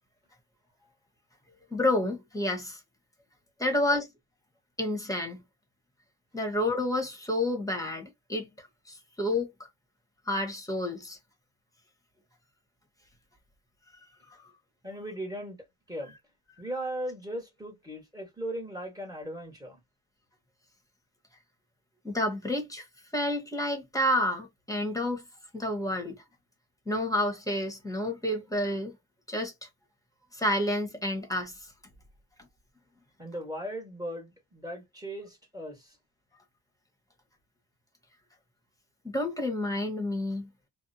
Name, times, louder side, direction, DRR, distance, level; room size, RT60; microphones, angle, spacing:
voice 1, 1.7-2.8 3.6-4.1 4.8-5.4 6.3-9.7 10.3-11.2 14.3-14.4 22.0-22.9 23.1-25.2 25.5-26.2 26.9-28.9 29.3-29.7 30.3-31.7 39.0-40.5, left 1 dB, 10° left, 1.1 m, -30 dB
voice 2, 14.8-15.6 15.9-16.1 16.6-19.8 33.2-36.0, right 1 dB, 10° right, 1.3 m, -38 dB
2.7 x 2.1 x 2.6 m
cardioid pair, 110°, 35 cm